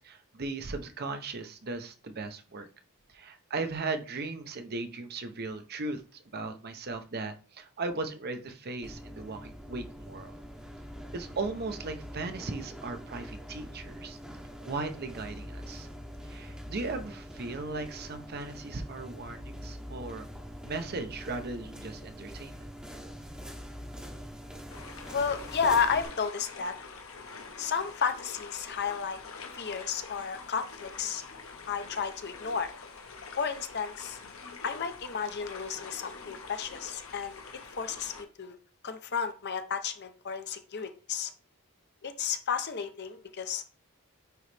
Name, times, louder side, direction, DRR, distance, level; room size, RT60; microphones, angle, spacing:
voice 1, 0.0-2.7 3.1-6.0 6.3-10.4 11.1-14.2 14.6-15.9 16.3-20.3 20.6-22.7, right 3 dB, 45° right, 7 dB, 0.7 m, -37 dB
sound 1, 8.8-26.0, equal, 5° right, 0.8 m, -44 dB
sound 2, 24.7-38.2, left 4 dB, 65° left, 1.1 m, -45 dB
voice 2, 25.1-26.7 27.6-29.2 29.6-31.2 31.7-32.7 33.3-34.2 34.6-37.4 37.8-38.6 38.8-41.3 42.0-43.7, left 6 dB, 50° left, 9 dB, 0.7 m, -32 dB
9.1 x 3.1 x 3.3 m, 0.37 s
head